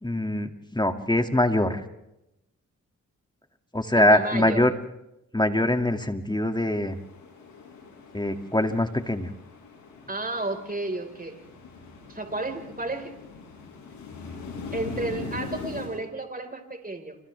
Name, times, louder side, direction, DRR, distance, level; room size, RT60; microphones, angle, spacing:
voice 1, 0.0-1.8 3.7-4.7 5.3-7.0 8.1-9.3, left 1 dB, 15° left, 7 dB, 2.4 m, -23 dB
voice 2, 3.9-4.6 10.1-11.4 12.1-13.1 14.7-17.2, right 2 dB, 25° right, 5 dB, 5.0 m, -32 dB
sound 1, 6.9-15.9, left 4 dB, 90° left, 7.1 m, -41 dB
29.5 x 26.5 x 3.5 m, 0.88 s
supercardioid pair, 45°, 33 cm